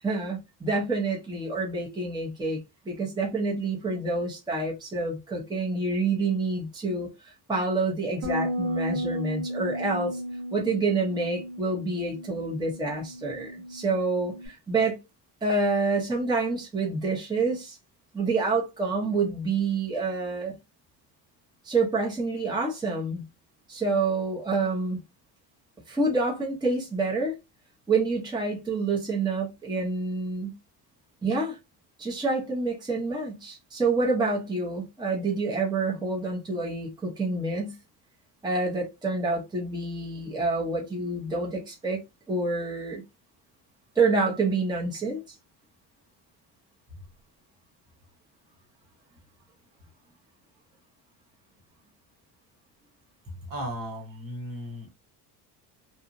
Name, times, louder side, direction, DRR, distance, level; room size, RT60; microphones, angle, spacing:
voice 1, 0.0-2.6 2.9-10.2 10.5-15.0 15.4-17.8 18.1-20.5 21.6-23.2 23.7-25.0 25.9-27.3 27.9-30.5 31.2-31.6 32.0-37.7 38.4-42.0 42.3-43.0 44.0-45.2, right 3 dB, 10° right, 0.8 m, -27 dB
Bass guitar, 8.2-14.5, equal, 70° right, 1.4 m, -34 dB
voice 2, 53.5-54.9, equal, 50° right, 1.3 m, -36 dB
2.9 x 2.3 x 2.5 m
cardioid pair, 125°, 43 cm